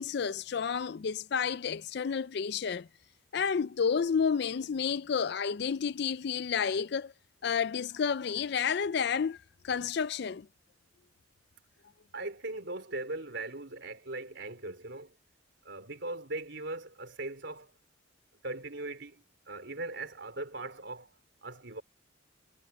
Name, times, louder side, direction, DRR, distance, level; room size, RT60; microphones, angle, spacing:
voice 1, 0.0-2.9 3.3-7.1 7.4-9.4 9.6-10.5, left 6 dB, 55° left, 0.4 m, -30 dB
voice 2, 12.1-15.1 15.6-17.7 18.4-21.1 21.4-21.8, right 2 dB, 60° right, 3.8 m, -39 dB
head